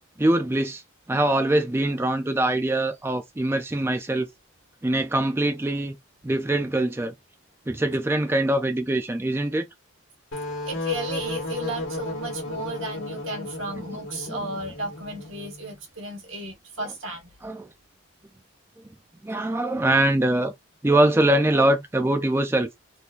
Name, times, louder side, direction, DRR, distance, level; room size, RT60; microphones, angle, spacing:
voice 1, 0.2-0.8 1.1-4.3 4.8-6.0 6.2-7.1 7.7-9.6 13.8-13.9 14.3-14.5 16.8-16.9 17.4-17.7 19.2-20.5 20.8-22.7, right 1 dB, 10° right, 0.3 m, -23 dB
sound 1, 10.3-15.8, left 1 dB, 85° left, 1.5 m, -34 dB
voice 2, 10.7-17.3, right 1 dB, 85° right, 1.3 m, -34 dB
3.6 x 2.9 x 2.4 m
head